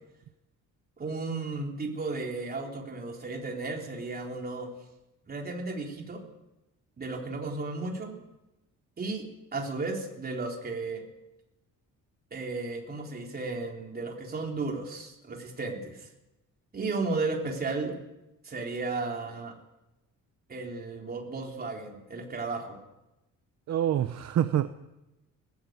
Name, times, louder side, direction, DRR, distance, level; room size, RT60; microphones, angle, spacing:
voice 1, 1.0-4.7 5.3-6.2 7.0-8.2 9.0-9.2 9.5-11.0 12.3-16.1 16.7-18.0 18.4-19.5 20.5-22.8, right 3 dB, 30° right, 1 dB, 3.9 m, -34 dB
voice 2, 23.7-24.7, right 11 dB, 55° right, 11 dB, 0.8 m, -26 dB
20.0 x 15.5 x 9.5 m, 0.96 s
cardioid pair, 165°, 32 cm